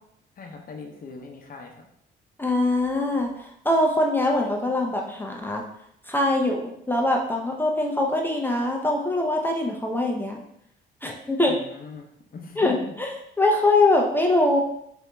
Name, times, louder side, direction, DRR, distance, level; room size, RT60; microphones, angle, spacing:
voice 1, 0.4-1.9 11.5-12.1 12.3-12.9, left 4 dB, 45° left, 3 dB, 0.8 m, -40 dB
voice 2, 2.4-5.6 6.1-10.4 11.0-11.6 12.6-14.6, left 2 dB, 10° left, 0 dB, 0.6 m, -23 dB
4.0 x 2.7 x 3.4 m, 0.73 s
cardioid pair, 90°, 20 cm